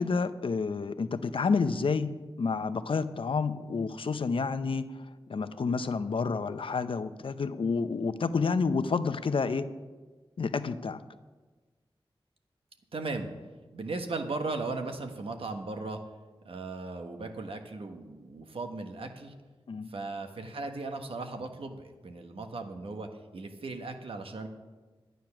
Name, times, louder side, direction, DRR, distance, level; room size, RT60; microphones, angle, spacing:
voice 1, 0.0-2.1 2.4-4.9 5.3-9.7 10.4-11.0 19.7-19.9, left 4 dB, 65° left, 11 dB, 0.6 m, -29 dB
voice 2, 12.9-13.3 13.7-16.0 16.4-19.3 19.9-24.5, right 3 dB, 75° right, 5 dB, 1.3 m, -37 dB
12.0 x 9.2 x 5.9 m, 1.3 s
wide cardioid pair, 95°, 10 cm